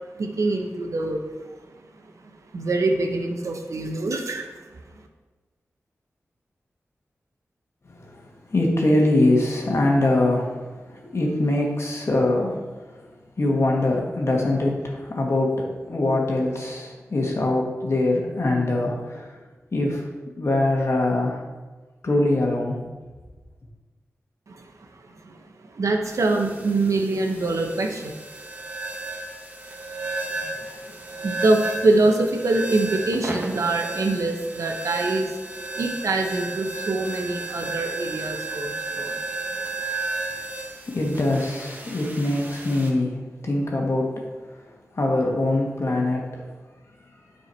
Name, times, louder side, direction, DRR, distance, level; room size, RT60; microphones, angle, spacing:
voice 1, 0.2-1.2 2.2-4.5 24.5-24.6 25.2-25.4 25.7-28.1 30.3-35.3 35.8-39.2, right 2 dB, 75° right, 3 dB, 1.0 m, -24 dB
voice 2, 7.9-12.6 13.4-19.4 19.7-20.0 20.4-21.4 22.0-22.8 40.9-43.2 43.4-44.1 44.5-44.6 44.9-46.4, left 2 dB, 55° left, -1 dB, 1.8 m, -23 dB
sound 1, 26.0-42.9, right 2 dB, 35° right, 1.6 m, -33 dB
8.8 x 4.6 x 4.5 m, 1.3 s
cardioid pair, 50°, 5 cm